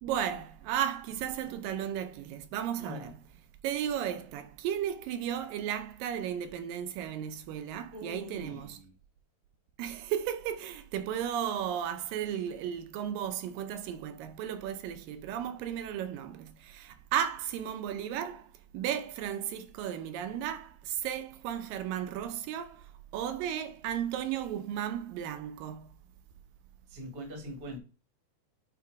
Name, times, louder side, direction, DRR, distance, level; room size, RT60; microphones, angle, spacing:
voice 1, 0.0-3.2 3.6-8.8 9.8-25.9, right 10 dB, 80° right, 2.3 m, -34 dB
voice 2, 2.8-3.1 7.9-8.9 26.9-27.8, equal, 30° right, 1.0 m, -43 dB
8.6 x 2.9 x 4.6 m
omnidirectional pair, 4.0 m